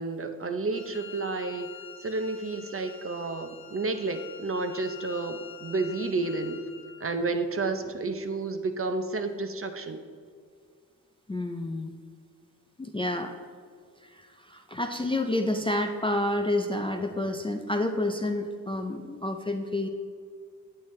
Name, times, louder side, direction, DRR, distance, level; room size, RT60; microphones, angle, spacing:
voice 1, 0.0-1.7 2.0-6.6 7.0-10.0, right 3 dB, 40° right, 7 dB, 0.6 m, -31 dB
Wind instrument woodwind instrument, 0.7-7.1, left 7 dB, 90° left, 0.8 m, -46 dB
voice 2, 11.3-11.9 12.8-13.3 14.0-19.9, left 1 dB, 15° left, 4 dB, 0.3 m, -29 dB
9.6 x 9.1 x 3.2 m, 2.1 s
wide cardioid pair, 170°, 35 cm